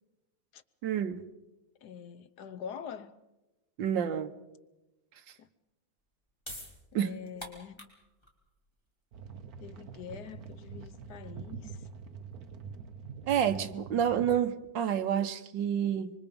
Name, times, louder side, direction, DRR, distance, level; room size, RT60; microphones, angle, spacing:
voice 1, 0.8-1.3 3.8-4.3 6.9-7.1 13.3-16.1, right 9 dB, 70° right, 1.7 m, -29 dB
voice 2, 1.8-3.1 5.4-5.5 6.9-7.9 9.6-11.9, left 7 dB, 60° left, 1.4 m, -45 dB
sound 1, 6.0-12.7, left 1 dB, 15° left, 3.4 m, -50 dB
sound 2, 9.1-14.4, right 6 dB, 55° right, 1.4 m, -45 dB
26.0 x 24.0 x 5.3 m
omnidirectional pair, 2.1 m